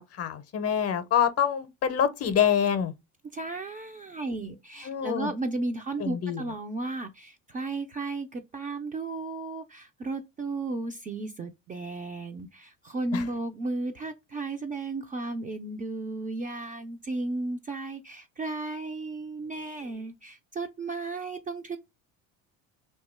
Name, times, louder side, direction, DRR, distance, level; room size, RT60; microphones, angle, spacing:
voice 1, 0.0-2.9 4.8-5.3 6.0-6.4 13.1-13.2, left 8 dB, 40° left, 0.6 m, -26 dB
voice 2, 3.3-21.8, right 2 dB, 20° right, 0.3 m, -34 dB
2.7 x 2.3 x 4.1 m
supercardioid pair, 100°, 39 cm